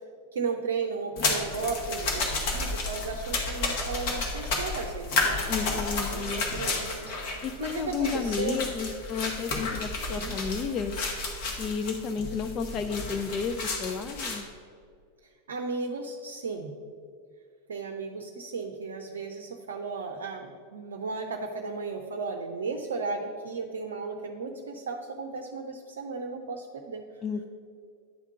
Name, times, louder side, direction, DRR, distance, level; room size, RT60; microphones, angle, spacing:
voice 1, 0.3-5.8 6.1-8.6 10.1-10.3 15.2-16.7 17.7-27.1, right 4 dB, 65° right, 4 dB, 0.6 m, -35 dB
sound 1, 1.2-14.4, left 3 dB, 50° left, 1.4 m, -32 dB
voice 2, 5.5-6.4 7.4-11.0 11.6-14.5 27.2-27.4, left 5 dB, 30° left, 8 dB, 0.4 m, -32 dB
9.7 x 3.6 x 6.6 m, 2.2 s
figure-of-eight pair, 90°, 0 cm